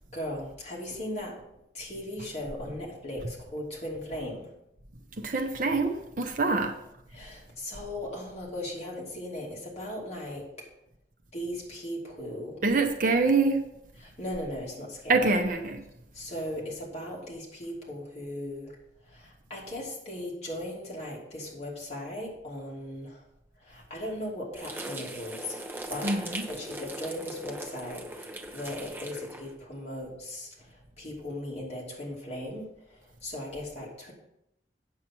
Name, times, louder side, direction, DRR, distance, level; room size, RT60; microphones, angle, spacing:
voice 1, 0.1-1.4 1.7-4.5 6.5-6.6 7.1-10.5 11.3-12.6 14.0-15.3 16.1-18.7 19.0-23.2 23.6-26.1 26.5-34.1, left 1 dB, 35° left, 2.7 m, -38 dB
voice 2, 5.2-6.7 12.6-13.6 15.1-15.8 26.0-26.4, right 3 dB, 45° right, 0.8 m, -25 dB
sound 1, 24.6-29.5, right 2 dB, 10° right, 0.7 m, -40 dB
8.7 x 7.3 x 4.5 m
head